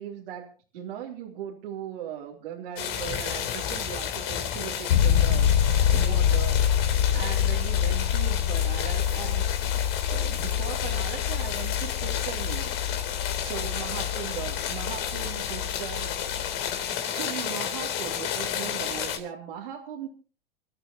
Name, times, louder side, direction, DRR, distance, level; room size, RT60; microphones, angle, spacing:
voice 1, 0.0-5.5 5.9-9.5 10.1-16.7 17.1-20.1, right 10 dB, 70° right, -3 dB, 3.2 m, -39 dB
sound 1, 2.7-19.2, left 9 dB, 50° left, 3.3 m, -32 dB
sound 2, 4.9-16.8, left 9 dB, 70° left, 1.1 m, -26 dB
27.5 x 13.0 x 2.9 m, 0.39 s
hypercardioid pair, 105°, 29 cm